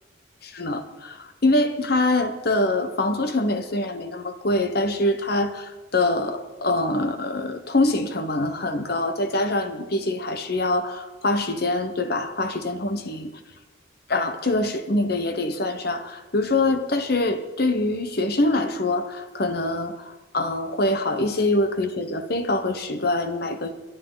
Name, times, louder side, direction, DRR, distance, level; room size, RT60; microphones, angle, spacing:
voice 1, 0.4-13.3 14.1-23.7, left 2 dB, 50° left, 8 dB, 1.1 m, -24 dB
23.0 x 10.5 x 4.0 m, 1.2 s
head